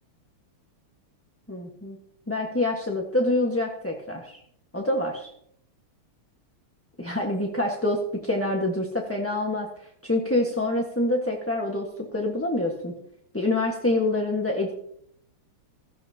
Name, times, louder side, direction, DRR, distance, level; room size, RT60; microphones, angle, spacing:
voice 1, 1.5-2.0 2.3-4.4 4.7-5.3 7.0-9.7 10.0-12.9 13.3-14.7, left 2 dB, 10° left, -1 dB, 1.1 m, -26 dB
16.0 x 15.5 x 2.9 m, 0.71 s
omnidirectional pair, 2.4 m